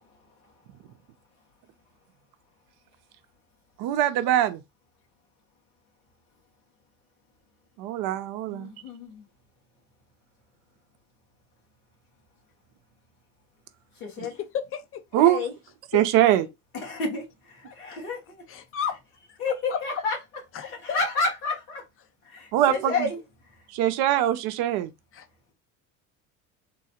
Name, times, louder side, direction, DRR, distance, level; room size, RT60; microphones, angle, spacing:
voice 1, 3.8-4.6 7.8-8.7 15.1-15.4 15.9-16.5 22.5-23.1 23.7-24.9, right 12 dB, 60° right, 0.6 m, -22 dB
voice 2, 8.5-9.3 14.0-14.4 15.2-15.5 16.7-18.4 19.4-20.2 20.6-21.8 22.3-23.2, left 3 dB, 85° left, 1.7 m, -30 dB
voice 3, 14.4-15.2 15.9-16.0 17.7-17.8 18.5-19.0 19.7-20.0 20.5-21.0 22.8-22.9 25.1-25.2, left 8 dB, 30° left, 0.7 m, -33 dB
3.8 x 2.3 x 2.8 m
hypercardioid pair, 70°, 43 cm